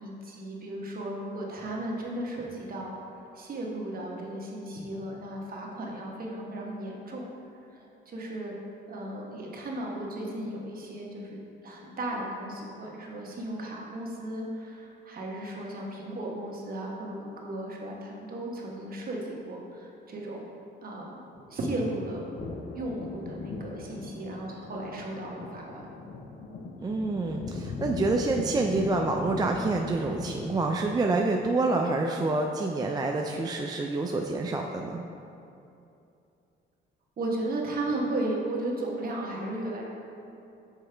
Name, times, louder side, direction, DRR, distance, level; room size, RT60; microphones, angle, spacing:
voice 1, 0.0-7.3 7.7-8.6 8.9-20.5 20.8-21.2 21.5-22.3 22.7-25.9 37.2-39.8, right 1 dB, 45° right, -2 dB, 1.1 m, -35 dB
sound 1, 21.3-31.8, left 3 dB, 50° left, 0.6 m, -40 dB
voice 2, 26.8-35.0, right 3 dB, 20° right, 1 dB, 0.3 m, -27 dB
6.3 x 4.7 x 3.3 m, 2.7 s
cardioid pair, 90°, 20 cm